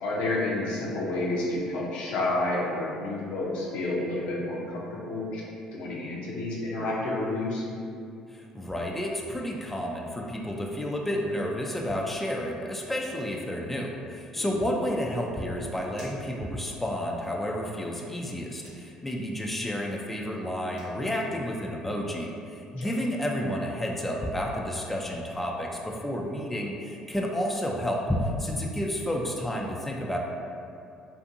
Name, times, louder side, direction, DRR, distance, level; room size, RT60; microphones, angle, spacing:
voice 1, 0.0-5.4 5.7-7.6 14.4-14.6 22.8-22.9, left 2 dB, 70° left, -4 dB, 0.5 m, -30 dB
voice 2, 8.3-30.2, equal, 10° left, -1 dB, 0.3 m, -31 dB
sound 1, 15.9-16.3 18.6-18.9 20.4-20.5 20.7-21.0, right 1 dB, 85° right, 0.9 m, -50 dB
2.5 x 2.5 x 2.6 m, 2.5 s
hypercardioid pair, 65°, 2 cm